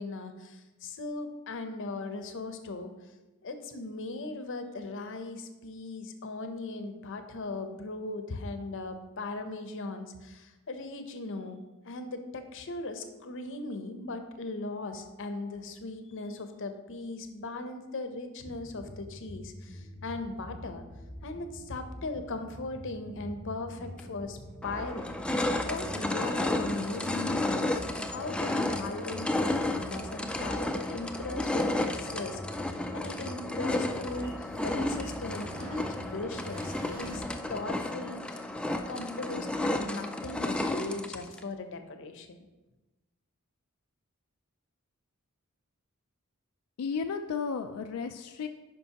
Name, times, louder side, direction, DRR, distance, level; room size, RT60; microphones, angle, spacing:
voice 1, 0.0-2.9 3.4-11.6 11.8-20.8 21.2-24.4 24.6-25.1 25.7-37.2 37.5-38.5 38.9-42.4, left 2 dB, 60° left, 7 dB, 0.7 m, -38 dB
sound 1, 18.5-37.2, left 1 dB, 55° right, 2.3 m, -46 dB
sound 2, 24.0-24.1 24.6-41.4, left 1 dB, 5° left, 0.3 m, -32 dB
sound 3, 31.3-37.2, right 1 dB, 70° right, 1.9 m, -48 dB
voice 2, 46.8-48.5, left 5 dB, 90° left, 6 dB, 0.4 m, -33 dB
10.0 x 5.2 x 2.9 m, 1.1 s
head